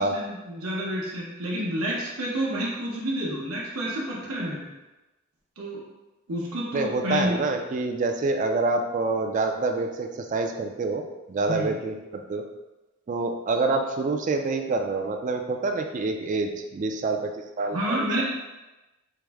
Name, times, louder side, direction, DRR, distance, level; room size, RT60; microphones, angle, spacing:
voice 1, 0.0-4.7 5.6-5.8 6.3-7.4 11.5-11.7 17.7-18.2, equal, 85° right, -5 dB, 0.8 m, -29 dB
voice 2, 6.7-12.4 13.1-18.2, right 3 dB, 35° right, 4 dB, 0.3 m, -27 dB
4.6 x 2.0 x 3.4 m, 1.1 s
head